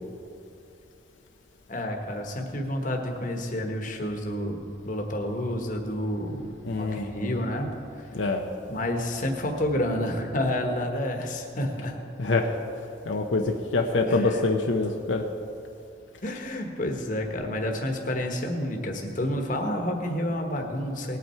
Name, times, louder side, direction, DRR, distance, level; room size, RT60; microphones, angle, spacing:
voice 1, 1.7-6.5 6.8-7.7 8.7-12.0 14.1-14.4 16.2-21.2, left 1 dB, 45° left, 2 dB, 1.3 m, -29 dB
voice 2, 6.6-7.4 8.1-8.4 12.2-12.5 13.0-15.2, left 3 dB, 80° left, 2 dB, 0.8 m, -25 dB
19.0 x 8.5 x 4.5 m, 2.7 s
head